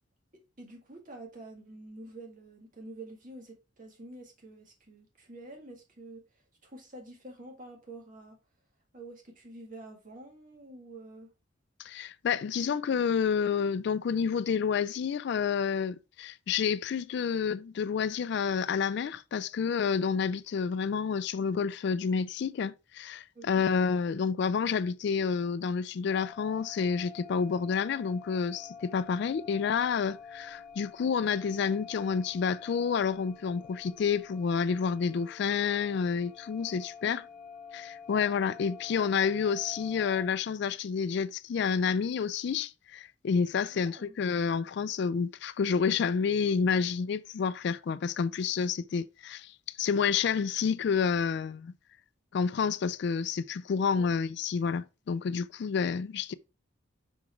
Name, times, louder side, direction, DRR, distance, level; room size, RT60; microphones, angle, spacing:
voice 1, 0.6-8.4 8.9-11.3 23.3-23.7 37.0-37.2 43.7-44.1 54.0-54.1, right 2 dB, 40° right, 1.9 m, -48 dB
voice 2, 11.8-37.2 37.7-51.7 52.3-56.3, left 6 dB, 60° left, 0.3 m, -29 dB
sound 1, 26.1-40.3, left 6 dB, 40° left, 1.2 m, -48 dB
6.2 x 3.9 x 4.4 m
head